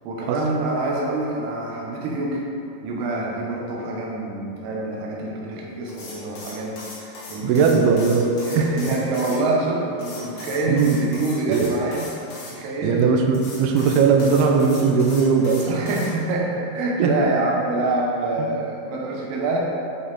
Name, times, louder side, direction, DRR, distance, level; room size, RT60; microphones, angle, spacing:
voice 1, 0.0-2.4 2.8-7.9 8.5-12.1 12.4-13.0 15.7-19.6, right 2 dB, 70° right, -2 dB, 3.0 m, -26 dB
sound 1, 5.9-9.4 10.0-12.5 13.3-16.1, left 3 dB, 70° left, 3.7 m, -39 dB
voice 2, 7.4-8.7 10.7-11.0 11.5-11.7 12.8-15.9 17.0-17.1 18.4-18.5, right 5 dB, 90° right, 2 dB, 2.2 m, -19 dB
8.9 x 5.6 x 4.2 m, 2.4 s
omnidirectional pair, 5.2 m